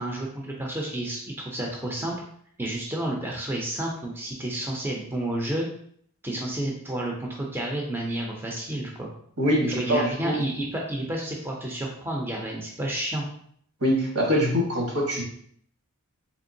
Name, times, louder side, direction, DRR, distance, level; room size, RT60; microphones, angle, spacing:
voice 1, 0.0-2.1 2.6-5.7 6.2-9.1 9.7-13.2, right 1 dB, 10° right, -1 dB, 0.4 m, -30 dB
voice 2, 9.4-10.4 13.8-15.2, equal, 70° right, -1 dB, 1.2 m, -24 dB
3.5 x 3.2 x 2.6 m, 0.63 s
head